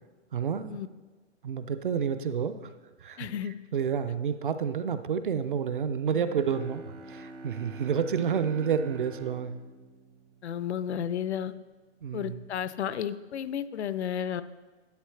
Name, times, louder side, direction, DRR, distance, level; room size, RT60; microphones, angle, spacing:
voice 1, 0.3-0.8 1.4-2.7 3.0-3.3 3.7-9.6 12.0-12.4, right 7 dB, 50° right, 11 dB, 0.4 m, -29 dB
voice 2, 3.2-3.5 10.4-11.5 12.1-14.4, left 9 dB, 70° left, 15 dB, 0.5 m, -32 dB
Bowed string instrument, 6.1-11.2, right 3 dB, 90° right, 1.5 m, -46 dB
11.5 x 6.8 x 3.2 m, 1.3 s
hypercardioid pair, 175°, 35 cm